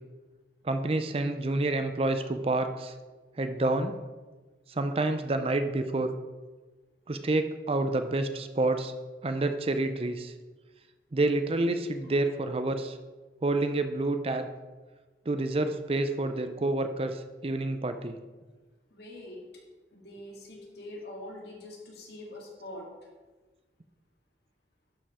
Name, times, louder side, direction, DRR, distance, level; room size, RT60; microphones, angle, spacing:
voice 1, 0.6-2.9 3.4-3.9 4.7-6.1 7.1-8.9 9.2-10.3 11.1-13.0 13.4-14.5 15.3-18.2, right 2 dB, 30° right, 8 dB, 0.5 m, -28 dB
voice 2, 18.9-19.6 19.9-22.9, left 1 dB, 60° left, -1 dB, 2.2 m, -44 dB
11.5 x 5.1 x 4.9 m, 1.3 s
head